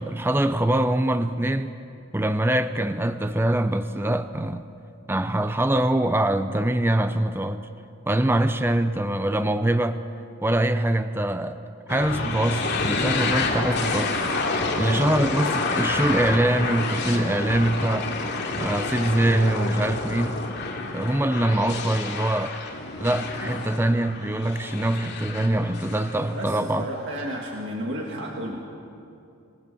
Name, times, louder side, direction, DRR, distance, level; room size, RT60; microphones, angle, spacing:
voice 1, 0.0-1.7 2.1-4.7 5.1-7.7 8.1-10.1 10.4-11.6 11.9-14.1 14.8-18.1 18.6-20.4 20.9-22.6 23.0-26.9, right 1 dB, 10° right, 0.6 m, -23 dB
sound 1, 11.9-26.8, left 3 dB, 50° left, 2.9 m, -29 dB
voice 2, 14.4-15.1 26.3-28.6, equal, 55° right, 2.1 m, -33 dB
27.0 x 19.5 x 7.0 m
head